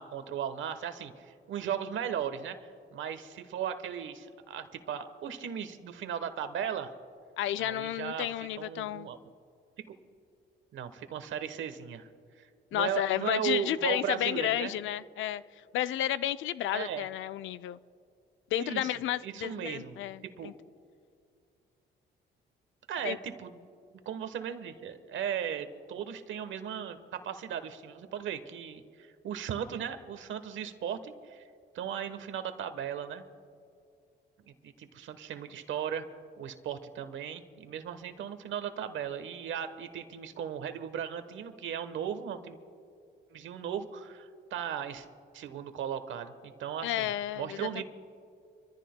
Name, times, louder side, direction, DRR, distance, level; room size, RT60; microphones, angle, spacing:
voice 1, 0.0-2.6 2.9-6.9 7.6-9.2 9.9-10.0 10.7-12.1 12.4-14.7 16.7-17.1 18.6-18.9 19.2-20.0 20.4-20.5 22.9-23.6 24.0-31.4 31.7-33.2 34.5-36.1 36.4-42.6 43.3-45.1 45.3-47.1 47.3-47.8, right 8 dB, 75° right, 10 dB, 1.1 m, -37 dB
voice 2, 7.4-9.1 12.7-15.4 15.7-17.8 18.5-20.5 23.0-23.2 46.8-47.8, left 13 dB, 75° left, 16 dB, 0.4 m, -32 dB
26.5 x 14.5 x 2.2 m, 2.4 s
cardioid pair, 90°, 20 cm